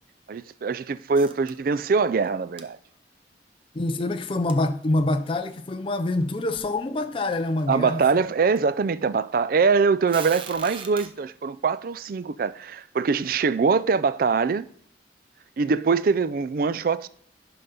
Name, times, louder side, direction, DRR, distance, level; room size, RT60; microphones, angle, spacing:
voice 1, 0.3-2.8 7.7-14.7 15.6-17.1, right 5 dB, 50° right, 0.4 m, -23 dB
sound 1, 1.1-1.9 2.2-2.3 2.6-2.7 4.5-4.6 5.4-5.5 6.2-6.3 6.5-6.8 7.3-7.7 8.6-8.7 10.1-11.1, right 6 dB, 30° right, 0.7 m, -40 dB
voice 2, 3.7-8.2, left 2 dB, 30° left, 0.4 m, -26 dB
11.0 x 3.8 x 5.4 m
head